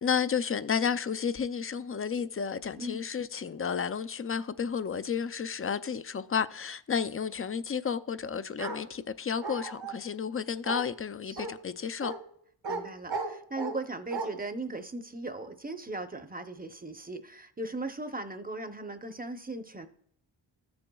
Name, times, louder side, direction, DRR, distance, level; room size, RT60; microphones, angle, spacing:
voice 1, 0.0-12.1, left 6 dB, 30° left, 0.4 m, -32 dB
Bark, 8.6-8.8 9.4-10.0 10.6-10.8 11.4-11.5 12.0-12.2 12.6-12.8 13.1-13.8 14.1-14.3, right 3 dB, 70° right, 1.9 m, -35 dB
voice 2, 12.7-19.9, right 2 dB, 20° right, 0.7 m, -38 dB
13.5 x 6.9 x 2.3 m
cardioid pair, 55°, 47 cm